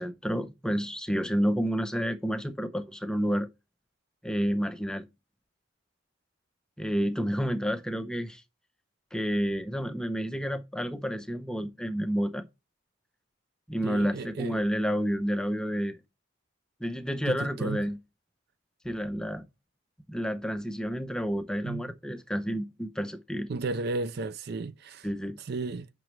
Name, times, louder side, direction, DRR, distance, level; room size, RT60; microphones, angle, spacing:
voice 1, 0.0-3.5 4.2-5.1 6.8-8.4 9.1-12.5 13.7-16.0 16.8-18.0 18.8-19.5 20.1-23.5 25.0-25.4, equal, 5° left, 0.6 m, -30 dB
voice 2, 13.8-14.6 17.2-17.9 21.6-21.9 23.5-25.1 25.4-25.9, right 3 dB, 50° right, 0.4 m, -34 dB
7.7 x 6.0 x 3.1 m
head